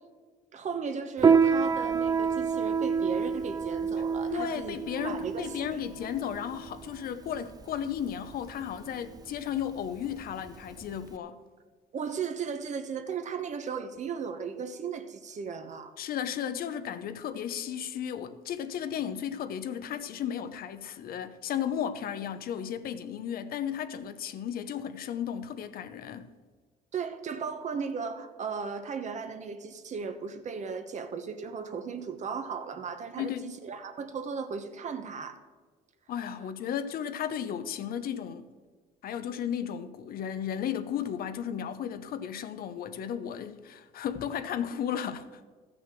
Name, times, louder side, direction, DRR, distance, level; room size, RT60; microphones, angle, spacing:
voice 1, 0.5-5.8 11.9-16.0 26.9-35.4, right 6 dB, 45° right, 1.2 m, -36 dB
Piano, 1.2-11.1, right 6 dB, 25° right, 0.4 m, -28 dB
voice 2, 4.3-11.4 16.0-26.3 33.2-33.5 36.1-38.4 39.0-45.4, left 9 dB, 60° left, 0.9 m, -34 dB
13.5 x 6.3 x 7.6 m
cardioid pair, 110°, 17 cm